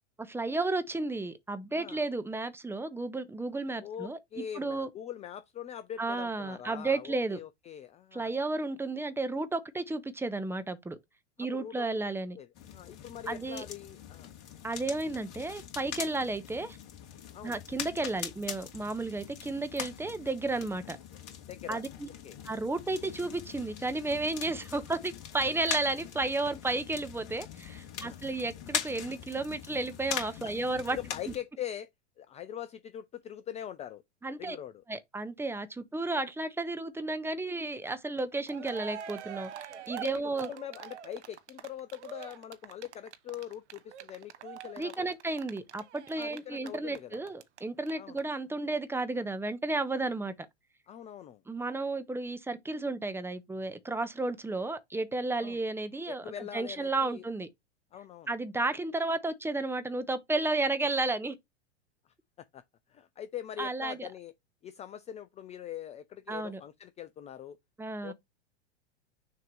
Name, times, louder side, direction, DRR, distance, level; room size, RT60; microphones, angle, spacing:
voice 1, 0.2-4.9 6.0-7.4 8.1-11.0 11.4-12.4 13.3-13.6 14.6-16.8 17.4-21.0 21.7-22.1 22.4-31.0 34.2-34.6 34.9-40.5 44.8-50.3 51.5-57.5 58.3-61.4 63.6-64.1 66.3-66.6 67.8-68.1, right 2 dB, 5° right, 0.8 m, -33 dB
voice 2, 1.7-2.0 3.8-8.3 11.4-12.0 12.4-14.3 17.3-17.6 21.5-21.8 22.2-22.4 27.9-28.2 30.4-31.9 32.2-34.0 34.4-34.8 40.0-45.1 46.2-47.2 48.0-48.2 50.9-51.4 55.4-55.6 56.1-57.2 57.9-58.3 62.5-62.6 62.9-64.3 64.6-67.6 68.0-68.1, left 10 dB, 20° left, 0.4 m, -43 dB
sound 1, 12.5-31.4, left 8 dB, 45° left, 2.4 m, -42 dB
Cheering, 38.2-38.3 38.5-47.6 47.9-48.0 48.2-48.3, right 9 dB, 75° right, 1.0 m, -44 dB
6.5 x 2.8 x 5.3 m
hypercardioid pair, 100°, 35 cm